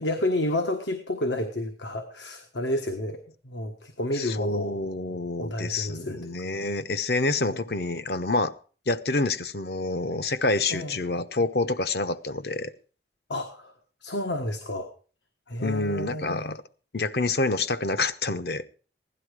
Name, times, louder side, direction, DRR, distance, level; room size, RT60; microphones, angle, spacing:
voice 1, 0.0-3.2 3.4-4.8 5.4-6.2 7.5-7.6 10.7-11.0 13.3-13.7 14.0-14.9 15.5-16.6, left 1 dB, 85° left, 1.5 m, -30 dB
voice 2, 4.1-8.5 8.9-12.7 15.6-16.6 16.9-18.6, left 3 dB, 65° left, 0.9 m, -27 dB
16.5 x 11.5 x 4.8 m
head